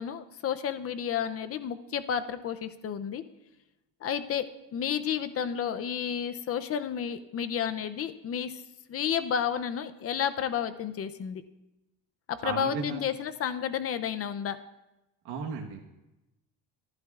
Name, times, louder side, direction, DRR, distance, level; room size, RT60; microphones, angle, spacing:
voice 1, 0.0-3.2 4.0-4.5 4.7-8.5 8.9-11.4 12.3-14.6, left 8 dB, 35° left, 11 dB, 0.5 m, -31 dB
voice 2, 12.4-13.1 15.2-15.8, right 5 dB, 65° right, -1 dB, 1.3 m, -35 dB
26.0 x 11.5 x 2.4 m, 0.99 s
cardioid pair, 160°, 43 cm